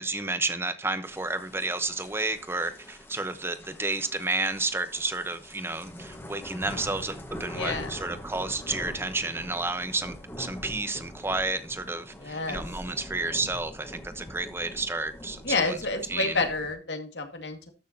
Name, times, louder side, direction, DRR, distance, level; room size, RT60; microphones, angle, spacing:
voice 1, 0.0-15.8 16.1-16.4, right 2 dB, 15° right, 1.0 m, -31 dB
sound 1, 1.0-16.7, left 1 dB, 15° left, 1.5 m, -43 dB
voice 2, 7.5-8.0 12.2-12.6 15.4-17.7, left 3 dB, 85° left, 2.1 m, -29 dB
13.0 x 6.4 x 2.8 m
head